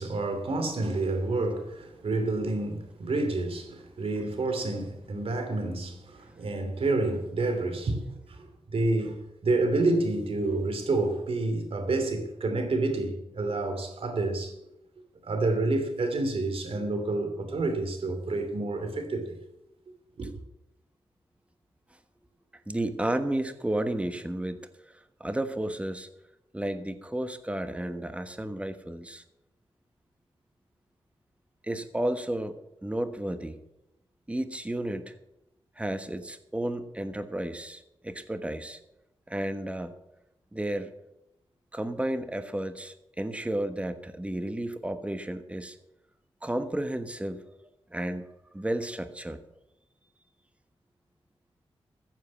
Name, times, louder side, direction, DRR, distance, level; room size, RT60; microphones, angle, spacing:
voice 1, 0.0-14.6 15.2-19.4 20.2-20.4, right 2 dB, 70° right, 2.8 m, -29 dB
voice 2, 22.7-26.1 26.5-29.2 31.6-33.6 34.3-35.2 35.8-38.8 39.3-39.9 40.5-40.9 41.7-45.8 46.4-47.4 47.9-48.3 48.5-49.4, right 1 dB, 10° right, 1.3 m, -32 dB
14.5 x 7.5 x 7.3 m
cardioid pair, 65°, 10 cm